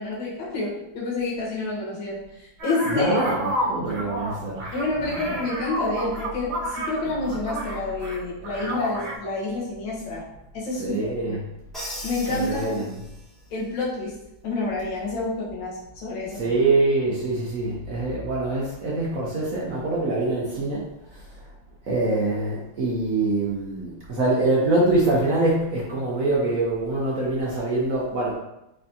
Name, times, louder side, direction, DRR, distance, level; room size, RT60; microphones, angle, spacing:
voice 1, 0.0-3.2 4.7-10.3 10.5-11.4 12.0-12.8 13.5-14.1 14.4-16.6, left 3 dB, 70° left, -5 dB, 1.8 m, -28 dB
sound 1, 2.6-8.2 8.4-9.2, right 1 dB, 80° right, 1.9 m, -31 dB
voice 2, 2.9-4.7 5.0-5.3 10.8-11.4 12.3-13.0 16.4-20.9 21.1-21.2 21.8-28.3, right 2 dB, 65° right, -4 dB, 0.8 m, -24 dB
Crash cymbal, 11.7-13.5, equal, ahead, 0.7 m, -38 dB
4.7 x 3.3 x 2.7 m, 0.87 s
omnidirectional pair, 2.2 m